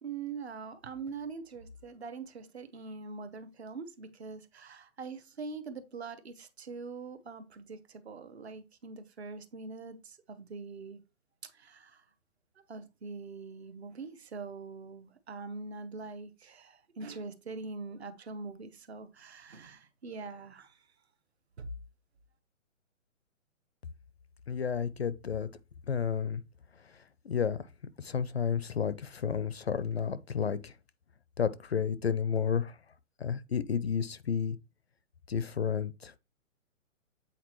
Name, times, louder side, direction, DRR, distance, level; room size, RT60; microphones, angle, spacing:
voice 1, 0.0-11.0 11.4-12.0 12.7-20.9 21.6-21.7, right 4 dB, 50° right, 1.0 m, -43 dB
voice 2, 24.5-25.5 25.9-26.4 27.2-27.6 28.0-30.7 31.4-32.8 33.2-34.6 35.3-36.2, left 7 dB, 50° left, 0.4 m, -31 dB
8.2 x 4.1 x 3.0 m
hypercardioid pair, 175°, 40 cm